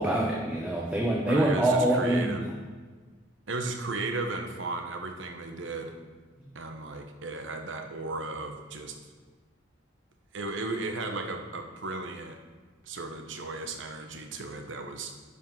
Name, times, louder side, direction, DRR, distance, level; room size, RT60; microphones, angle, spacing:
voice 1, 0.0-2.4, right 1 dB, 10° right, -3 dB, 0.9 m, -25 dB
voice 2, 1.3-2.4 3.5-5.9 6.5-9.0 10.3-12.4 12.8-15.1, right 3 dB, 70° right, 5 dB, 1.0 m, -35 dB
10.5 x 5.4 x 5.4 m, 1.4 s
head